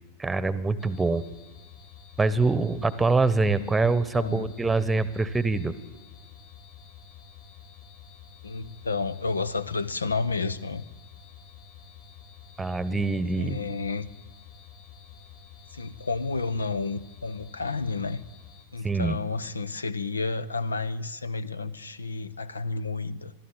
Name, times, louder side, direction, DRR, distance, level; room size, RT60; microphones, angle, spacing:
voice 1, 0.2-1.2 2.2-5.7 12.6-13.6 18.8-19.2, right 3 dB, 10° right, 17 dB, 1.0 m, -24 dB
sound 1, 0.8-18.7, left 7 dB, 50° left, 4.0 m, -49 dB
voice 2, 4.2-4.5 8.4-10.8 13.4-14.1 15.7-18.2 18.7-23.3, left 4 dB, 75° left, 17 dB, 0.8 m, -31 dB
22.5 x 14.0 x 9.2 m, 1.1 s
figure-of-eight pair, 90°, 0 cm